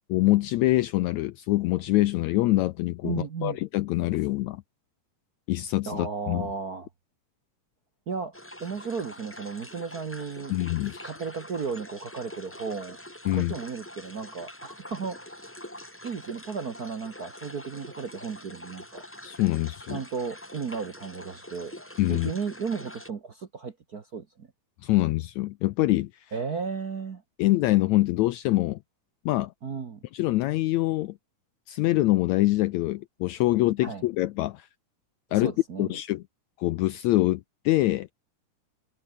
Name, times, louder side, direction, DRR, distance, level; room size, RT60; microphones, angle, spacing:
voice 1, 0.1-4.6 5.5-6.5 10.5-11.1 13.3-13.6 19.2-20.0 22.0-22.3 24.8-26.1 27.4-28.8 29.3-29.5 30.1-31.2 31.7-34.7 35.3-35.5 35.8-36.2 36.6-38.1, left 17 dB, 80° left, 1.7 m, -25 dB
voice 2, 3.0-3.6 5.9-6.9 8.1-10.5 11.0-13.0 13.3-15.5 16.0-19.0 19.9-21.7 22.1-24.5 26.3-27.2 29.6-30.0 33.8-34.1 35.3-35.9, right 5 dB, 55° right, 1.0 m, -34 dB
sound 1, 8.3-23.1, left 1 dB, 5° left, 1.5 m, -45 dB
omnidirectional pair, 3.8 m